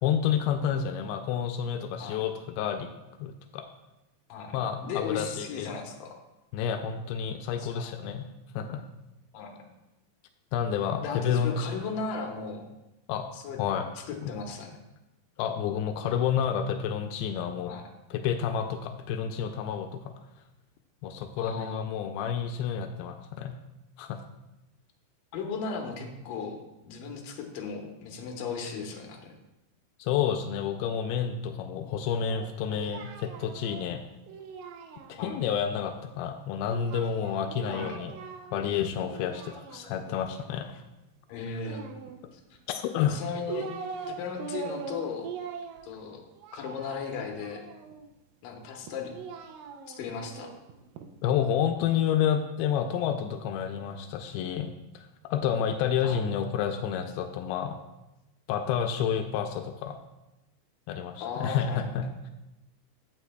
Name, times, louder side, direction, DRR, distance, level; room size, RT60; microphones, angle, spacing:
voice 1, 0.0-2.9 3.2-3.7 4.5-5.7 6.5-8.3 8.6-8.9 10.5-11.7 13.1-13.3 13.6-13.9 14.2-14.3 15.4-17.7 18.1-20.1 21.0-23.6 24.0-24.2 30.0-34.0 35.1-38.1 38.5-40.8 42.7-43.2 51.2-57.8 58.5-60.0 60.9-62.1, left 8 dB, 90° left, 6 dB, 2.5 m, -29 dB
voice 2, 4.3-6.2 7.6-8.0 9.3-9.7 11.0-12.7 13.3-13.6 14.1-14.8 17.7-17.8 21.4-21.9 25.3-29.3 35.2-35.4 37.7-37.9 41.3-41.8 42.3-42.4 43.0-43.7 44.1-45.3 45.8-46.2 46.5-47.7 48.4-49.1 49.9-50.6 56.0-56.2 61.2-62.1, left 5 dB, 70° left, 2 dB, 2.5 m, -36 dB
Singing, 32.3-35.5 36.7-38.7 39.0-40.2 41.6-42.6 43.1-44.1 44.4-48.1 48.8-51.1, right 6 dB, 75° right, 2.1 m, -42 dB
15.5 x 6.2 x 2.2 m, 0.97 s
omnidirectional pair, 4.3 m